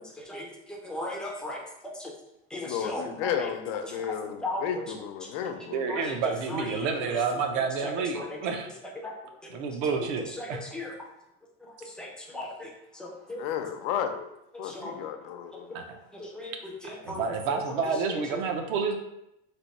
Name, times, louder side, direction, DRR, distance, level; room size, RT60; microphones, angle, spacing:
voice 1, 0.2-1.6 2.5-3.1 4.4-4.6 5.9-6.0 6.5-6.9 7.8-8.2 9.0-9.1 10.4-10.5 10.7-10.9 12.0-12.7 13.0-13.4 14.7-14.9 16.1-16.5 16.8-17.2, left 1 dB, 5° left, -2 dB, 0.3 m, -36 dB
voice 2, 2.6-5.8 13.4-14.3 14.6-15.7, left 8 dB, 75° left, 7 dB, 0.6 m, -33 dB
voice 3, 5.7-8.7 9.5-10.6 15.7-16.0 16.8-19.0, right 5 dB, 65° right, 5 dB, 0.7 m, -29 dB
3.4 x 2.6 x 4.1 m, 0.85 s
cardioid pair, 170°, 29 cm